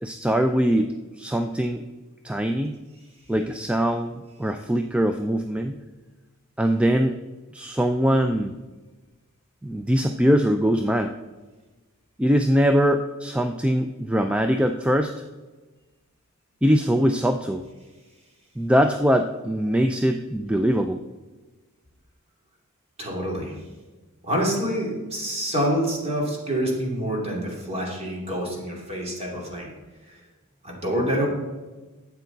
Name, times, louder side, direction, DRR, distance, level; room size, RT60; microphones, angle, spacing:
voice 1, 0.0-1.8 2.2-2.8 3.3-5.8 6.6-7.2 7.5-8.5 9.6-11.1 12.2-15.2 16.6-17.6 18.6-21.0, equal, 5° right, 7 dB, 0.3 m, -22 dB
voice 2, 23.0-23.5 24.2-29.7 30.1-30.2 30.6-31.3, equal, 30° right, -2 dB, 2.7 m, -27 dB
12.5 x 8.2 x 4.0 m, 1.2 s
head